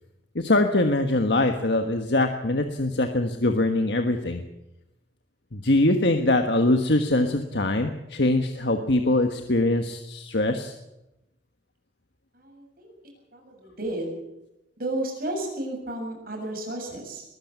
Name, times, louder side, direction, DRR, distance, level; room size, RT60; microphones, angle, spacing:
voice 1, 0.3-4.4 5.5-10.7, left 2 dB, 70° left, 6 dB, 1.4 m, -23 dB
voice 2, 12.3-12.9 13.3-14.1 14.8-17.2, right 1 dB, 55° right, 1 dB, 7.2 m, -32 dB
21.5 x 14.5 x 8.6 m, 0.91 s
head